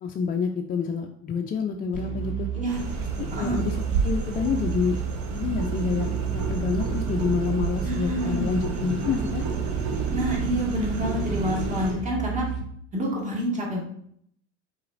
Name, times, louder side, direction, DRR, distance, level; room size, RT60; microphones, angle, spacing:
voice 1, 0.0-2.5 3.2-3.8 4.0-5.0 5.3-6.1 6.5-9.4, left 6 dB, 25° left, 3 dB, 0.4 m, -27 dB
sound 1, 1.9-12.6, right 7 dB, 90° right, 1.8 m, -32 dB
sound 2, 2.7-11.9, right 4 dB, 50° right, 1.0 m, -31 dB
voice 2, 7.8-8.5 10.1-12.5 12.9-13.8, equal, 20° right, -3 dB, 1.7 m, -28 dB
4.7 x 4.2 x 2.5 m, 0.67 s
hypercardioid pair, 80°, 36 cm